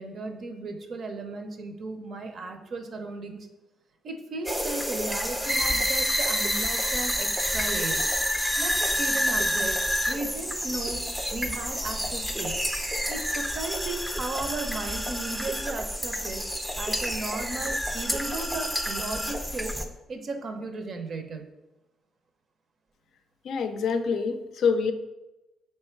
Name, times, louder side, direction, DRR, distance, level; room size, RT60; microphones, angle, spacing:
voice 1, 0.0-3.4 4.0-8.0 8.6-9.8 10.1-11.0 11.3-12.6 13.1-16.5 16.8-19.8 20.1-21.4, right 3 dB, 50° right, 5 dB, 0.6 m, -35 dB
sound 1, 4.5-19.9, equal, 5° right, 0.5 m, -28 dB
voice 2, 23.4-24.9, left 5 dB, 70° left, 7 dB, 0.4 m, -26 dB
3.3 x 3.1 x 4.4 m, 0.98 s
cardioid pair, 90°, 0 cm